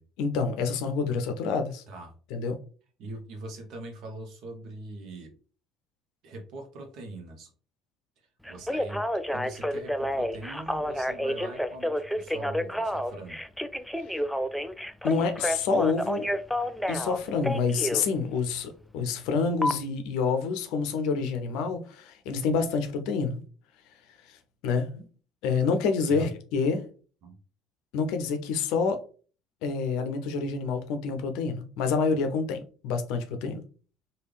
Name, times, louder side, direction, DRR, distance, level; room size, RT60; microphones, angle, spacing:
voice 1, 0.2-1.8 2.3-2.6 15.0-16.3 16.9-23.4 24.3-24.4 24.6-25.0 25.4-26.8 27.9-29.0 29.6-33.7, left 5 dB, 65° left, 0.5 m, -28 dB
voice 2, 3.0-5.3 6.2-7.5 8.2-13.4 26.1-26.3 27.2-27.4, right 2 dB, 60° right, 0.8 m, -41 dB
Telephone, 8.5-18.0 19.6-19.7, equal, ahead, 0.3 m, -29 dB
3.3 x 2.3 x 3.2 m
hypercardioid pair, 60°, 0 cm